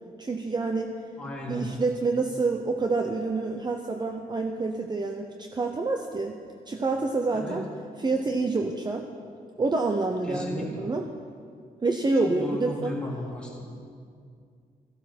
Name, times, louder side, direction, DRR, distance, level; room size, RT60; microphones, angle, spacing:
voice 1, 0.2-0.9 1.5-6.3 6.7-7.7 8.0-9.0 9.6-11.1 11.8-12.9, right 3 dB, 25° right, 4 dB, 0.8 m, -27 dB
voice 2, 1.2-1.7 7.3-7.6 10.3-10.7 12.2-13.7, left 1 dB, 5° left, -5 dB, 3.4 m, -35 dB
14.5 x 12.0 x 6.0 m, 2.3 s
wide cardioid pair, 125°, 16 cm